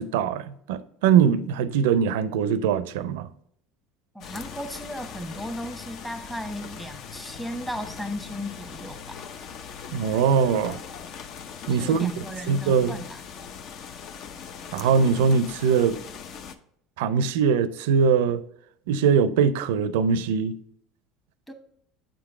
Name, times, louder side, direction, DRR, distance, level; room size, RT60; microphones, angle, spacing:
voice 1, 0.0-3.3 9.9-10.8 11.7-12.1 12.5-13.0 14.7-16.0 17.0-18.4 18.9-20.6, right 6 dB, 80° right, 0.4 m, -22 dB
voice 2, 4.1-9.3 11.7-13.2 21.5-21.6, equal, 5° left, 1.0 m, -36 dB
sound 1, 4.2-16.6, left 7 dB, 55° left, 0.5 m, -40 dB
8.5 x 3.8 x 3.6 m
supercardioid pair, 95°, 0 cm